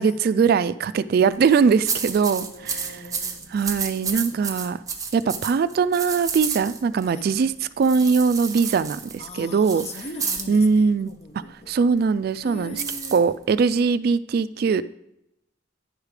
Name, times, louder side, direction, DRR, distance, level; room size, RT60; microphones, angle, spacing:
voice 1, 0.0-3.0 3.5-4.8 5.1-9.8 10.5-11.1 11.7-12.8 13.1-14.8, right 5 dB, 55° right, 0.3 m, -21 dB
sound 1, 1.3-7.1 7.8-10.6 12.8-13.8, right 5 dB, 20° right, 0.9 m, -31 dB
voice 2, 2.3-3.5 4.0-4.7 7.1-7.3 9.2-11.7 12.4-13.4, left 2 dB, 35° left, 0.8 m, -41 dB
10.5 x 4.9 x 4.9 m
head